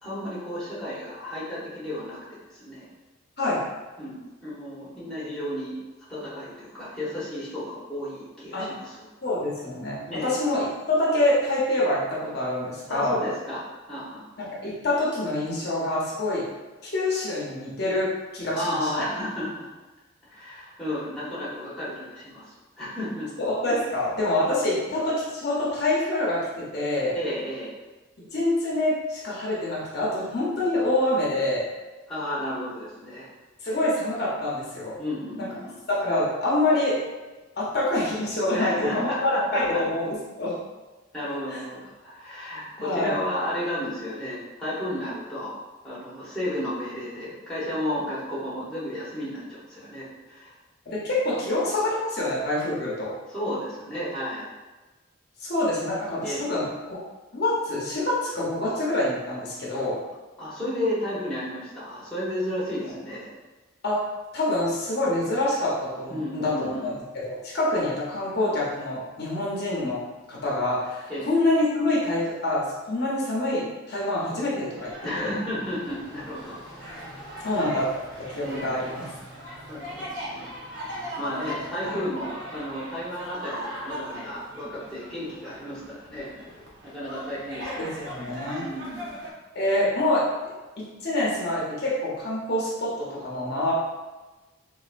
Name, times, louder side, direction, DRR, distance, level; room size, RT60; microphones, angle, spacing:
voice 1, 0.0-2.2 2.5-2.9 4.0-5.8 6.1-9.0 10.1-10.3 12.9-14.2 18.5-19.7 20.2-23.3 27.1-27.7 32.1-33.3 33.7-33.8 35.0-35.7 38.5-39.8 41.1-45.5 45.8-50.5 53.3-54.5 56.2-56.4 60.4-63.3 66.1-66.9 71.1-71.3 75.0-76.6 78.4-79.2 79.7-80.5 81.2-86.3 86.8-88.1 88.6-89.1, left 1 dB, 5° left, -10 dB, 1.0 m, -33 dB
voice 2, 9.2-13.2 14.4-16.4 16.8-18.9 23.4-27.2 28.3-31.7 33.6-35.0 35.9-37.0 37.6-40.1 40.4-40.6 41.5-41.6 42.8-43.2 50.9-53.1 55.4-57.0 57.3-60.0 63.8-64.1 64.3-66.9 67.2-70.0 70.3-75.3 77.4-77.9 78.2-79.0 81.8-82.0 87.8-88.6 89.5-90.2 90.8-93.7, left 1 dB, 50° left, -5 dB, 0.8 m, -26 dB
sound 1, 74.8-89.3, equal, 65° right, 0.9 m, -39 dB
3.9 x 2.6 x 2.5 m, 1.2 s
head